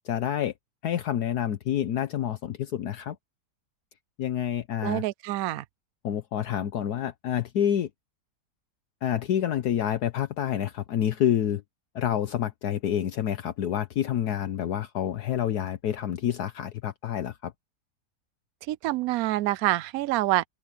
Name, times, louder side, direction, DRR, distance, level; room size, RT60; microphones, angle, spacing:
voice 1, 0.0-0.5 0.8-3.2 4.2-5.0 6.0-7.9 9.0-11.6 11.9-17.5, left 10 dB, 70° left, 1.4 m, -28 dB
voice 2, 4.8-5.6 18.7-20.4, right 16 dB, 70° right, 0.9 m, -26 dB
open air
omnidirectional pair, 1.8 m